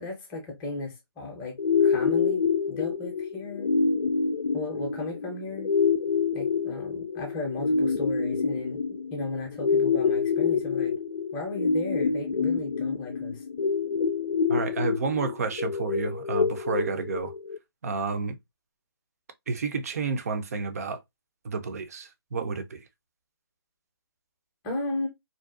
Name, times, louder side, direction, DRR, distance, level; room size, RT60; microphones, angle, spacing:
voice 1, 0.0-3.7 4.5-5.7 6.3-11.0 11.3-13.4 24.6-25.1, left 2 dB, 10° left, 0.6 m, -35 dB
sound 1, 1.6-17.6, left 5 dB, 80° left, 0.5 m, -27 dB
voice 2, 14.5-17.3 17.8-18.3 19.5-21.0 21.4-22.8, right 4 dB, 35° right, 0.4 m, -30 dB
2.5 x 2.2 x 2.3 m
hypercardioid pair, 160°, 13 cm